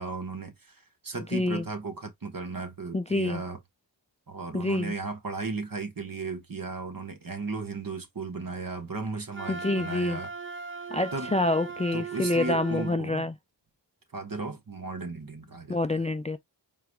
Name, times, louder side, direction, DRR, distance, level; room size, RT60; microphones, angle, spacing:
voice 1, 0.0-3.6 4.3-10.3 11.1-11.3 11.9-13.3 14.1-16.1, right 4 dB, 50° right, 1.4 m, -35 dB
voice 2, 1.3-1.6 2.9-3.4 4.5-4.9 9.5-10.2 10.9-13.3 15.7-16.4, left 2 dB, 15° left, 0.3 m, -27 dB
Wind instrument woodwind instrument, 9.3-13.0, right 5 dB, 30° right, 0.7 m, -38 dB
4.7 x 3.9 x 2.3 m
wide cardioid pair, 55°, 43 cm